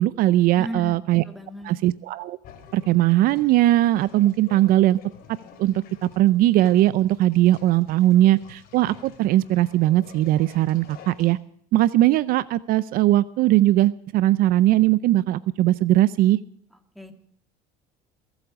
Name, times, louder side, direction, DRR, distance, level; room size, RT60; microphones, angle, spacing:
voice 1, 0.0-1.2 1.6-2.4 2.7-5.0 5.6-11.4 11.7-16.4, right 15 dB, 60° right, 18 dB, 0.5 m, -19 dB
voice 2, 0.6-1.7 16.7-17.1, equal, ahead, 6 dB, 2.2 m, -36 dB
sound 1, 2.4-11.3, left 7 dB, 65° left, 3.2 m, -49 dB
21.5 x 8.2 x 6.1 m, 0.65 s
supercardioid pair, 105°, 17 cm